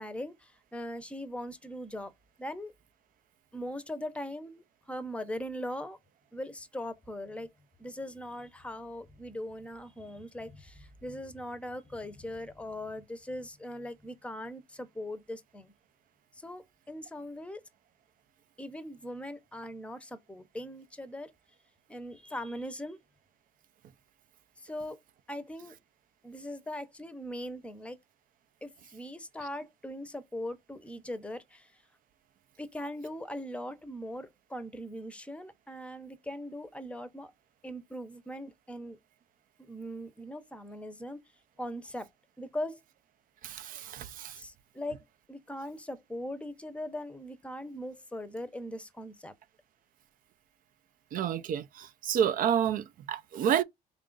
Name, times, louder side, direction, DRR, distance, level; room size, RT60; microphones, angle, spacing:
voice 1, 0.0-2.1 2.4-2.7 3.5-6.0 6.3-7.5 7.8-15.7 16.3-17.6 18.6-21.3 21.9-23.0 24.6-25.0 25.3-25.7 26.2-28.0 28.6-31.7 32.6-37.3 37.6-39.0 39.6-41.2 41.6-42.1 42.4-42.8 44.4-49.4, left 1 dB, 5° left, 0.7 m, -40 dB
voice 2, 43.4-44.4 51.1-53.6, right 9 dB, 55° right, 0.4 m, -29 dB
3.7 x 2.4 x 3.8 m
cardioid pair, 110°, 17 cm